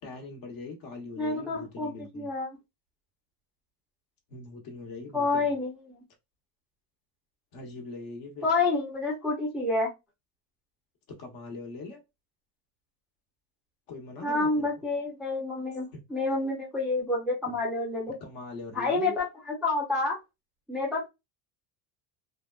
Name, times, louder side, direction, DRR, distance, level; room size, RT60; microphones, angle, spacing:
voice 1, 0.0-2.3 4.3-5.5 7.5-8.5 11.1-12.0 13.9-14.7 15.9-16.0 17.4-17.6 18.2-19.1, left 3 dB, 50° left, 1.0 m, -41 dB
voice 2, 1.2-2.5 5.1-6.0 8.4-9.9 14.2-18.2 18.7-20.2 20.7-21.1, left 3 dB, ahead, 0.5 m, -28 dB
3.4 x 2.1 x 2.3 m
cardioid pair, 155°, 44 cm